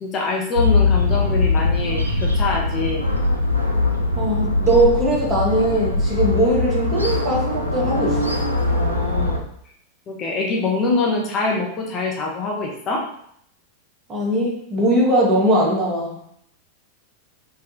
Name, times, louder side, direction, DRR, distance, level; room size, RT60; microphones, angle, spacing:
voice 1, 0.0-3.1 8.7-9.4 10.1-13.0, left 3 dB, 30° left, -1 dB, 0.5 m, -24 dB
sound 1, 0.5-9.4, left 3 dB, 90° right, 0.4 m, -21 dB
voice 2, 4.2-8.4 14.1-16.2, right 1 dB, 25° right, -3 dB, 1.0 m, -20 dB
3.4 x 2.2 x 2.5 m, 0.69 s
figure-of-eight pair, 90°, 0 cm